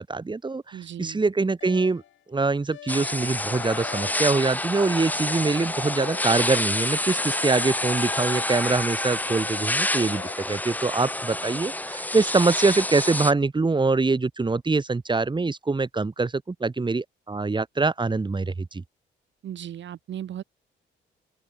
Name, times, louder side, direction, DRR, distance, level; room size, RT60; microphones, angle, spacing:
voice 1, 0.0-2.0 2.3-18.8, right 3 dB, 25° right, 3.2 m, -24 dB
voice 2, 0.7-1.2 19.4-20.4, right 10 dB, 65° right, 4.3 m, -36 dB
sound 1, 1.6-2.2 2.7-4.6 4.9-6.7 7.1-8.9 9.2-10.3, left 12 dB, 75° left, 2.9 m, -42 dB
sound 2, 2.9-13.3, left 1 dB, 10° left, 3.0 m, -28 dB
open air
cardioid pair, 90°, 20 cm